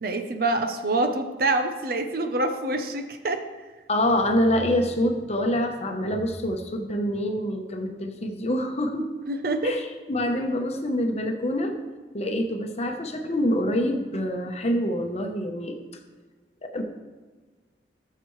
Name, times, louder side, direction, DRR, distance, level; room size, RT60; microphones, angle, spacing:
voice 1, 0.0-3.4 9.3-9.8, right 2 dB, 55° right, 7 dB, 0.8 m, -26 dB
voice 2, 3.9-9.1 9.6-11.8 12.1-15.8 16.7-16.8, equal, 35° left, 4 dB, 0.9 m, -26 dB
14.5 x 6.8 x 3.2 m, 1.4 s
head